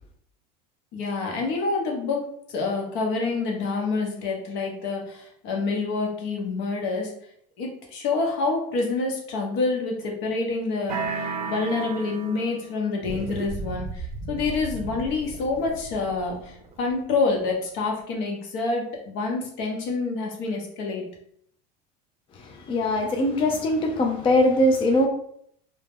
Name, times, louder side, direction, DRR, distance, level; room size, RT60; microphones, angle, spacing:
voice 1, 0.9-2.2 2.5-7.1 7.6-11.0 11.5-21.0, left 3 dB, 65° left, 0.8 m, -27 dB
sound 1, 10.9-12.8, right 5 dB, 85° right, 0.5 m, -32 dB
sound 2, 13.0-17.7, right 3 dB, 30° right, 0.5 m, -37 dB
voice 2, 22.3-25.1, left 1 dB, 25° left, 0.4 m, -22 dB
2.2 x 2.0 x 3.4 m
supercardioid pair, 100°, 20 cm